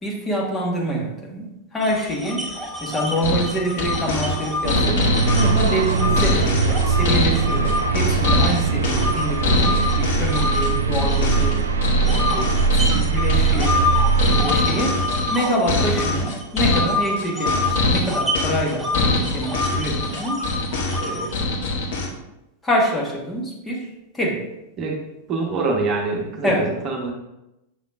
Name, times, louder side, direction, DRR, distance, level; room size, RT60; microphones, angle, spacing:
voice 1, 0.0-2.5 2.8-11.6 12.0-12.4 12.7-13.8 14.2-15.0 15.3-20.5 21.0-21.5 22.6-23.9 24.1-24.5 26.4-26.7, right 1 dB, 15° left, -1 dB, 1.3 m, -26 dB
sound 1, 1.8-7.8 8.2-11.6 12.0-21.4, left 2 dB, 5° right, 1.1 m, -28 dB
sound 2, 3.2-22.1, left 2 dB, 55° left, 1.0 m, -23 dB
sound 3, 4.6-14.5, right 5 dB, 70° right, 0.4 m, -21 dB
voice 2, 25.3-27.1, right 3 dB, 35° right, 0 dB, 1.1 m, -24 dB
7.2 x 5.7 x 2.4 m, 0.90 s
figure-of-eight pair, 90°, 0 cm